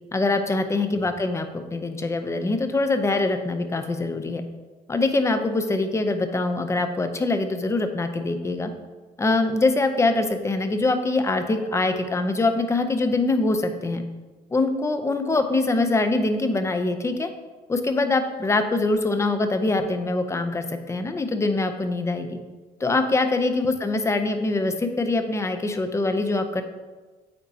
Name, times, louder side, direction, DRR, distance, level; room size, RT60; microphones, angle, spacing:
voice 1, 0.1-4.4 4.9-8.7 9.2-14.0 14.5-17.3 17.7-22.4 22.8-26.6, left 2 dB, 15° left, 8 dB, 0.5 m, -24 dB
8.5 x 4.1 x 2.7 m, 1.3 s
cardioid pair, 110°, 17 cm